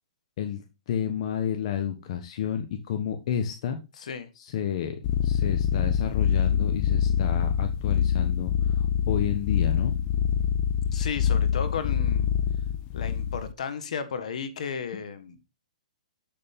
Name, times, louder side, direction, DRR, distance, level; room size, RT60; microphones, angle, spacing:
voice 1, 0.4-3.8 4.4-10.0, left 9 dB, 55° left, 1.2 m, -31 dB
voice 2, 4.0-4.3 10.9-12.3 12.9-15.4, left 6 dB, 70° left, 1.6 m, -34 dB
sound 1, 5.0-13.5, left 8 dB, 35° left, 0.5 m, -25 dB
7.6 x 6.9 x 3.6 m
hypercardioid pair, 135°, 4 cm